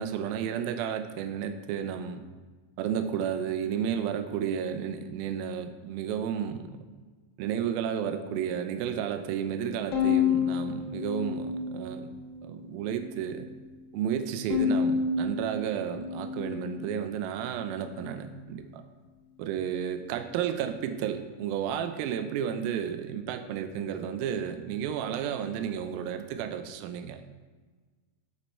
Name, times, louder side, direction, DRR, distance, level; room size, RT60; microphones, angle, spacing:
voice 1, 0.0-2.2 2.8-6.7 7.4-12.1 12.4-13.5 13.9-18.8 19.4-27.2, right 8 dB, 80° right, 7 dB, 2.4 m, -32 dB
Bowed string instrument, 9.9-12.3 12.7-13.5 14.5-17.0, left 7 dB, 80° left, 1.0 m, -30 dB
8.5 x 8.4 x 4.3 m, 1.4 s
omnidirectional pair, 4.4 m